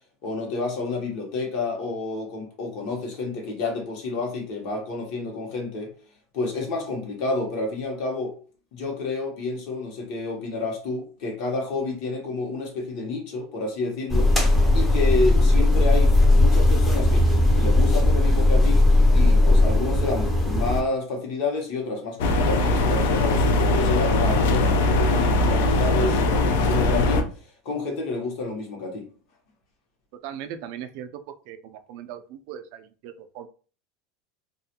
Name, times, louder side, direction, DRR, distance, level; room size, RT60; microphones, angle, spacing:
voice 1, 0.2-5.9 6.3-8.3 8.7-17.3 17.6-18.8 19.1-27.3 27.6-29.1, left 3 dB, 55° left, 0.9 m, -29 dB
sound 1, 14.1-20.8, left 2 dB, 10° left, 0.5 m, -18 dB
sound 2, 22.2-27.2, left 2 dB, 75° left, 0.4 m, -21 dB
voice 2, 30.2-31.1 31.5-33.5, right 9 dB, 60° right, 0.3 m, -38 dB
2.3 x 2.1 x 2.8 m
supercardioid pair, 145°, 0 cm